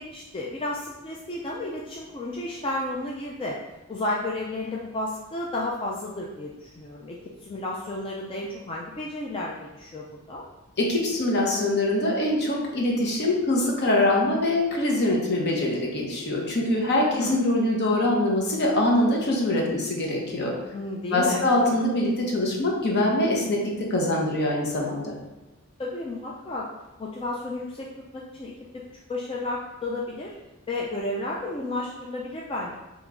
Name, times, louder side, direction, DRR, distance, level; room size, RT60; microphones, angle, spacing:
voice 1, 0.0-3.6 3.9-10.4 17.1-17.3 20.7-21.4 21.7-21.8 25.8-26.7 27.0-27.9 28.1-28.8 29.1-30.4 30.7-32.8, left 2 dB, 25° left, -3 dB, 0.4 m, -32 dB
voice 2, 10.8-20.5 21.1-25.1, left 1 dB, 55° left, -1 dB, 0.9 m, -23 dB
3.5 x 3.0 x 3.7 m, 1.1 s
head